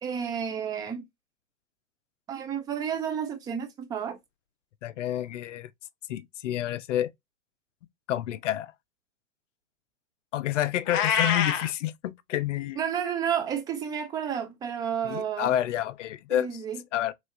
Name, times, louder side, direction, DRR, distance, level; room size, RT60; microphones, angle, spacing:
voice 1, 0.0-1.0 2.3-4.2 12.8-15.5 16.3-16.8, right 8 dB, 10° right, 0.4 m, -31 dB
voice 2, 4.8-5.7 6.1-7.1 8.1-8.7 10.3-12.8 15.0-16.5 16.9-17.1, left 12 dB, 65° left, 0.6 m, -29 dB
Meow, 10.9-11.7, left 8 dB, 35° left, 0.9 m, -25 dB
3.3 x 3.2 x 2.6 m
hypercardioid pair, 125°, 40 cm